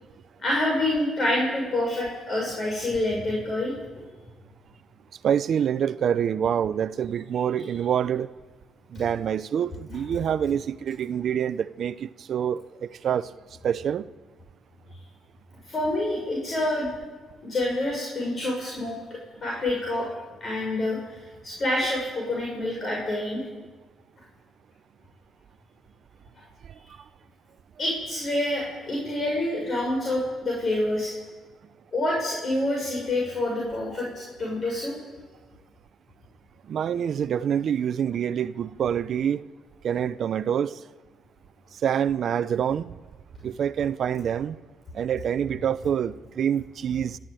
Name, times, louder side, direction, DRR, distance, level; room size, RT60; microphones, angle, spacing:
voice 1, 0.4-3.7 15.7-16.9 17.4-20.1 20.4-23.4 27.8-31.1 31.9-35.0, left 1 dB, 45° left, 6.6 m, -27 dB
voice 2, 5.2-8.3 8.9-13.3 13.6-14.0 36.7-39.4 39.8-40.7 41.8-42.9 43.4-44.6 44.9-47.2, right 8 dB, 60° right, 0.6 m, -26 dB
29.5 x 13.5 x 9.2 m
cardioid pair, 90°, 0 cm